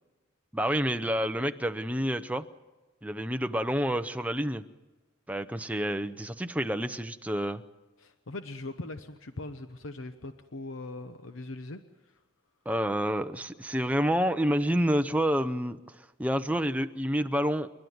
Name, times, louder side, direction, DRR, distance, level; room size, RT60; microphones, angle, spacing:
voice 1, 0.5-2.5 3.0-4.6 5.3-7.6 12.7-17.7, equal, 5° right, 9 dB, 0.7 m, -28 dB
voice 2, 8.0-12.1, left 2 dB, 80° left, 9 dB, 1.0 m, -41 dB
29.5 x 12.0 x 9.4 m, 1.2 s
head